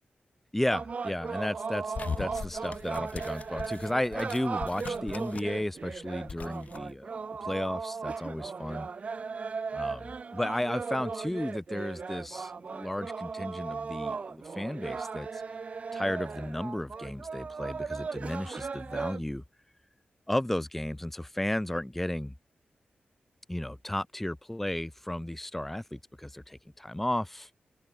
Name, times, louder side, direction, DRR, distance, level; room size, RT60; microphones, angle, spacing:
voice 1, 0.5-7.1 7.4-8.9 9.7-15.4 15.9-19.4 20.3-22.3 23.5-27.5, left 1 dB, 5° left, 0.8 m, -34 dB
sound 1, 0.7-19.2, right 5 dB, 45° right, 1.9 m, -37 dB
sound 2, 1.9-5.6 5.9-6.8, left 5 dB, 50° left, 1.6 m, -40 dB
wide cardioid pair, 155°, 3 cm